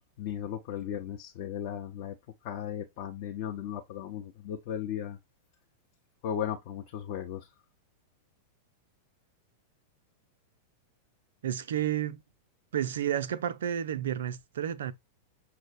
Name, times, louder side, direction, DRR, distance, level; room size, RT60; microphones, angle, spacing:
voice 1, 0.0-2.2 2.4-5.2 6.2-7.5, left 9 dB, 45° left, 0.6 m, -36 dB
voice 2, 11.4-12.2 12.7-14.9, right 10 dB, 65° right, 0.4 m, -31 dB
6.3 x 2.1 x 4.0 m
figure-of-eight pair, 95°, 0 cm